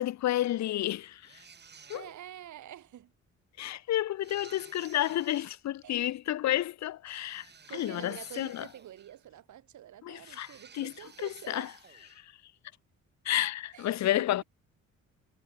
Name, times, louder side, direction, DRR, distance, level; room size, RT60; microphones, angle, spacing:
voice 1, 0.0-1.4 1.9-2.0 3.6-7.5 7.7-8.7 10.0-10.9 11.5-11.7 12.2-12.3 13.2-14.4, left 13 dB, 65° left, 0.7 m, -31 dB
sound 1, 1.2-2.4 4.2-5.6 7.2-9.3 10.2-12.2, right 6 dB, 35° right, 1.7 m, -54 dB
voice 2, 1.9-3.1 5.8-6.2 7.7-11.7 13.7-14.3, right 12 dB, 75° right, 4.1 m, -47 dB
cardioid pair, 90°, 30 cm